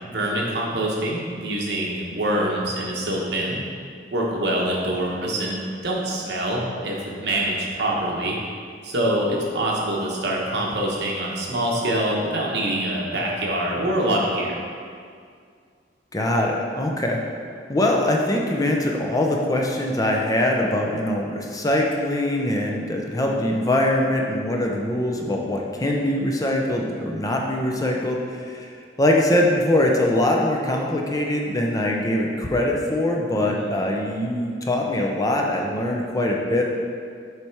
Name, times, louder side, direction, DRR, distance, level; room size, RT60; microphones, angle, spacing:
voice 1, 0.0-3.6 4.1-8.4 8.8-14.5 33.4-33.7, right 1 dB, 65° right, -2 dB, 1.1 m, -25 dB
voice 2, 16.1-17.2 17.7-28.7 29.0-36.7, left 1 dB, 20° left, 0 dB, 0.5 m, -22 dB
7.1 x 3.3 x 4.6 m, 2.2 s
head